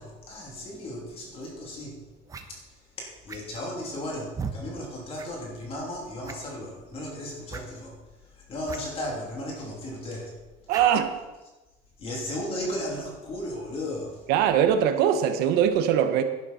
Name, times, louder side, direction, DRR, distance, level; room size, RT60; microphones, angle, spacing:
voice 1, 0.0-2.0 2.5-7.9 8.3-10.3 12.0-14.2, left 1 dB, 35° left, -2 dB, 3.1 m, -35 dB
sound 1, 1.4-1.5 2.3-2.5 3.3-3.7 4.3-4.6 5.2-5.3 5.6-5.7 6.2-6.6 7.5-7.7 8.6-8.8 9.1-9.2 10.7-10.9, right 5 dB, 20° right, 1.0 m, -36 dB
voice 2, 10.7-11.1 14.3-16.2, right 9 dB, 75° right, 8 dB, 1.3 m, -21 dB
11.0 x 11.0 x 4.3 m, 1.1 s
cardioid pair, 140°, 16 cm